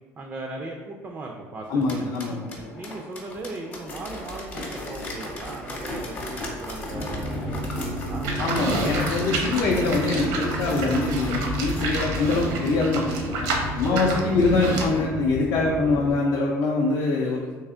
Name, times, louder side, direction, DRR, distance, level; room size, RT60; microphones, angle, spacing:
voice 1, 0.2-2.1 2.7-8.3 13.9-14.4, right 2 dB, 20° right, 1 dB, 0.3 m, -38 dB
voice 2, 1.7-2.4 8.4-17.5, left 3 dB, 55° left, -2 dB, 0.5 m, -24 dB
sound 1, 1.7-11.9 12.4-12.5 12.9-13.0 13.5-13.6 14.1-14.2 14.7-14.8, left 1 dB, 25° left, 0.7 m, -37 dB
sound 2, 6.9-16.1, equal, 85° left, 0.9 m, -31 dB
Livestock farm animals working animals, 8.2-15.0, right 3 dB, 80° right, 0.7 m, -30 dB
3.3 x 2.7 x 3.7 m, 1.4 s
cardioid pair, 150°, 6 cm